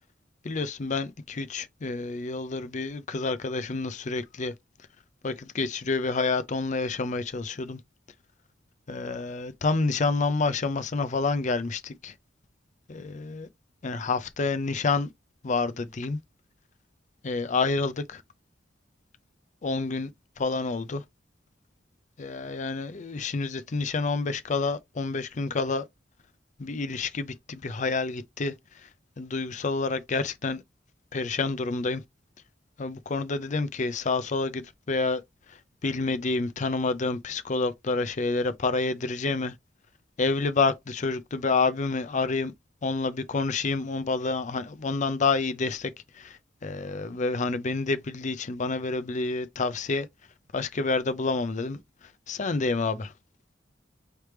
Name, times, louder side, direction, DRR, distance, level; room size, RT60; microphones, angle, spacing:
voice 1, 0.4-4.5 5.2-7.8 8.9-12.1 12.9-13.5 13.8-15.1 15.4-16.2 17.2-18.2 19.6-20.1 20.4-21.0 22.2-25.9 26.6-28.9 29.2-30.6 31.1-32.0 32.8-35.2 35.5-39.5 40.2-42.5 42.8-50.1 50.5-53.1, left 3 dB, 40° left, 0.5 m, -28 dB
4.3 x 3.3 x 3.3 m
head